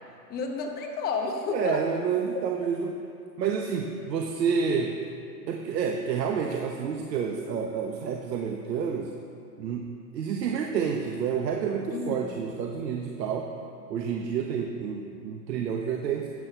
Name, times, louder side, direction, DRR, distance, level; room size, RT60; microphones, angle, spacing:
voice 1, 0.3-1.8 2.6-2.7 11.9-12.3, left 4 dB, 20° left, 2 dB, 1.0 m, -31 dB
voice 2, 1.5-3.0 3.4-5.0 5.5-9.1 9.6-13.5 13.9-16.3, right 6 dB, 85° right, 2 dB, 1.2 m, -29 dB
13.0 x 8.7 x 5.6 m, 2.4 s
hypercardioid pair, 155°, 48 cm